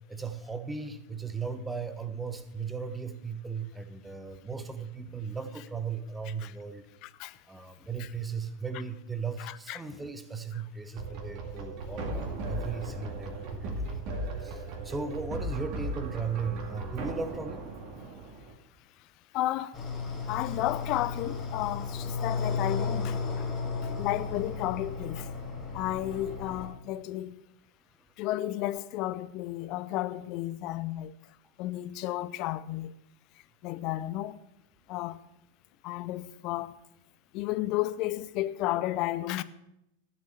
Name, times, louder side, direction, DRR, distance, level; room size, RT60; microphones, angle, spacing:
voice 1, 0.1-6.8 7.5-14.0 14.4-17.7, right 5 dB, 10° right, 1.1 m, -37 dB
voice 2, 7.0-7.4 8.0-8.1 9.4-9.8 19.3-19.7 20.3-23.5 23.8-25.3 25.7-27.3 28.2-31.1 31.6-32.9 33.6-34.4 34.9-35.2 35.8-36.7 37.3-39.4, left 15 dB, 40° left, 0.7 m, -32 dB
sound 1, 10.9-18.5, right 2 dB, 40° right, 2.2 m, -37 dB
sound 2, 19.7-26.7, left 4 dB, 25° left, 2.8 m, -34 dB
13.5 x 7.4 x 7.7 m
figure-of-eight pair, 90°, 0 cm